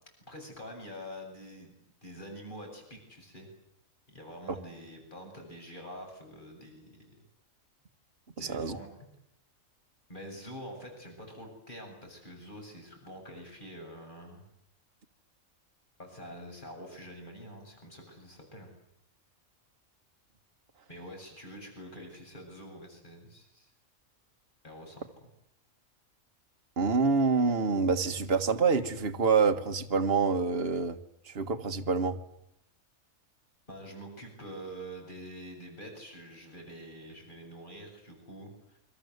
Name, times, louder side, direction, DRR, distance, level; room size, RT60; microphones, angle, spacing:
voice 1, 0.3-3.5 4.1-7.1 8.4-8.9 10.1-14.4 16.0-18.7 20.9-23.7 24.6-25.3 33.7-38.8, equal, 35° left, 2 dB, 8.3 m, -46 dB
voice 2, 8.4-8.8 26.8-31.0 31.3-32.2, right 4 dB, 45° right, 7 dB, 1.8 m, -26 dB
29.0 x 24.5 x 8.1 m, 0.74 s
omnidirectional pair, 1.4 m